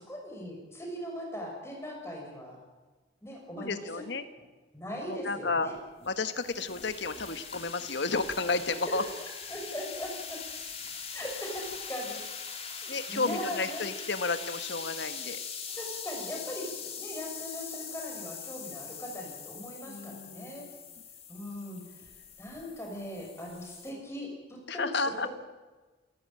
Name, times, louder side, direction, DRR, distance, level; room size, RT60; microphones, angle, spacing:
voice 1, 0.0-2.6 3.2-4.0 4.7-5.7 8.8-9.0 9.5-10.4 11.1-12.2 12.5-13.8 15.7-20.6 21.3-22.1 22.4-25.3, equal, 15° left, 0 dB, 6.5 m, -40 dB
voice 2, 3.6-4.2 5.1-5.7 6.1-9.0 12.9-15.4 19.9-20.7 24.7-25.3, left 3 dB, 60° left, 10 dB, 1.3 m, -32 dB
Vinegar to Baking Soda with nr, 5.7-23.9, left 6 dB, 30° left, 2.7 m, -42 dB
28.5 x 14.0 x 9.0 m, 1.2 s
head